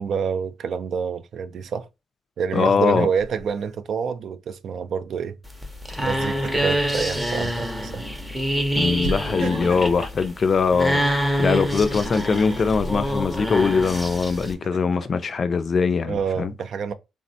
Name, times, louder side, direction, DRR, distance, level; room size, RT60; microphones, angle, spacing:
voice 1, 0.0-1.9 2.4-5.4 6.0-8.0 16.0-16.9, right 6 dB, 60° right, 0.3 m, -27 dB
voice 2, 2.5-3.1 8.8-11.0 11.4-16.5, left 5 dB, 45° left, 0.3 m, -22 dB
Laughter, 3.2-3.7 6.0-6.9 7.4-7.5 9.0-10.2 11.7-12.7 13.8-15.1, right 2 dB, 85° right, 0.8 m, -36 dB
sound 1, 5.4-14.5, equal, ahead, 0.6 m, -26 dB
3.4 x 2.0 x 2.6 m
cardioid pair, 90°, 0 cm